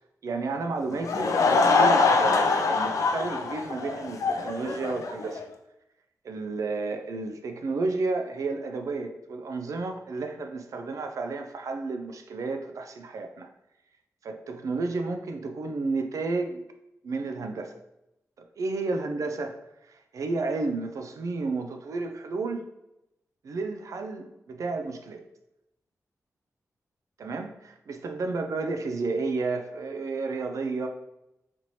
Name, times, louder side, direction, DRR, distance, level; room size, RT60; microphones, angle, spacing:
voice 1, 0.2-5.4 6.2-13.5 14.2-16.6 17.0-17.7 18.4-19.6 19.9-22.6 23.4-25.3 27.2-30.9, right 3 dB, 70° right, 5 dB, 0.3 m, -32 dB
Laughter / Crowd, 0.9-5.4, left 4 dB, 70° left, 0.4 m, -24 dB
4.2 x 2.7 x 3.0 m, 0.88 s
wide cardioid pair, 175°, 6 cm